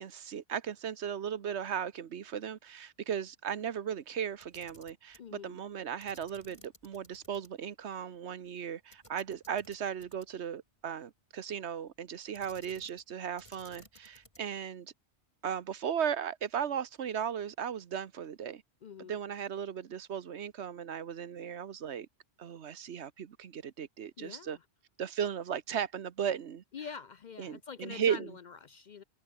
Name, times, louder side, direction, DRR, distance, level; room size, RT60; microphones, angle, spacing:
voice 1, 0.0-14.9 15.4-18.6 19.1-22.1 22.4-24.6 25.0-26.6 27.4-28.3, right 8 dB, 75° right, 1.2 m, -36 dB
Camera, 4.3-5.3 6.0-7.5 7.8-7.9 8.9-10.5 12.3-13.1 13.4-14.6, left 1 dB, 25° left, 6.3 m, -58 dB
voice 2, 5.2-5.6 18.8-19.2 24.2-24.6 26.7-29.0, left 6 dB, 50° left, 0.6 m, -45 dB
omnidirectional pair, 1.2 m